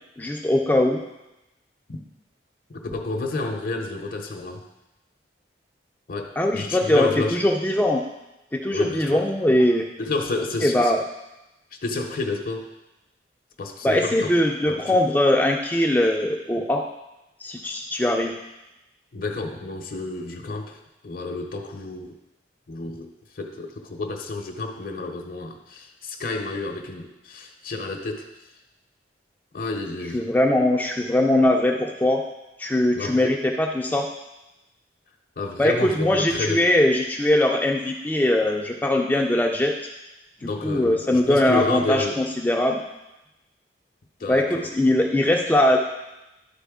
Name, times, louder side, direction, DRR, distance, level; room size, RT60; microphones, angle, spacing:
voice 1, 0.2-1.0 6.4-8.0 8.5-9.9 10.6-11.0 13.8-16.8 17.4-18.3 30.1-32.2 32.6-34.1 35.6-39.7 40.4-42.8 44.3-45.8, left 1 dB, 10° left, 0 dB, 0.3 m, -21 dB
voice 2, 2.7-4.6 6.1-7.4 8.7-9.2 10.0-10.9 11.8-12.7 13.6-14.3 14.7-14.9 16.6-16.7 19.1-22.1 22.7-28.3 29.5-30.2 32.9-33.3 35.4-36.7 40.4-42.2 44.2-44.7, left 3 dB, 50° left, 4 dB, 0.6 m, -30 dB
11.5 x 4.0 x 3.5 m, 0.96 s
head